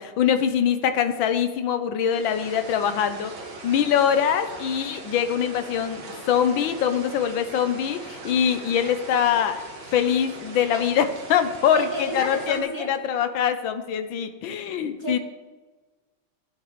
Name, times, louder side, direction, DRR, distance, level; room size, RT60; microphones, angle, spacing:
voice 1, 0.0-3.3 3.6-9.6 9.9-15.2, left 8 dB, 75° left, 9 dB, 1.5 m, -23 dB
sound 1, 2.1-12.6, right 3 dB, 80° right, 2.2 m, -40 dB
voice 2, 11.7-12.9 15.0-15.2, right 1 dB, 10° left, -4 dB, 2.6 m, -32 dB
16.0 x 8.1 x 3.2 m, 1.3 s
omnidirectional pair, 2.2 m